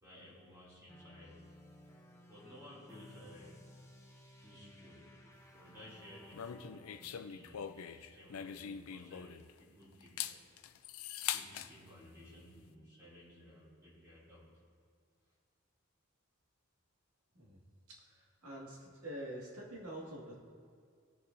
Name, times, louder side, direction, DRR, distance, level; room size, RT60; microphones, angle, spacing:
voice 1, 0.0-1.4 2.3-3.7 4.4-5.1 5.4-10.4 11.3-14.6, equal, 15° right, -8 dB, 2.6 m, -56 dB
sound 1, 0.9-7.1, left 1 dB, 15° left, 0.8 m, -58 dB
sound 2, 6.3-9.6 10.0-11.7, left 9 dB, 80° left, 0.4 m, -42 dB
voice 2, 17.9-20.3, right 1 dB, 85° right, -3 dB, 2.2 m, -46 dB
18.0 x 6.8 x 2.7 m, 2.1 s
head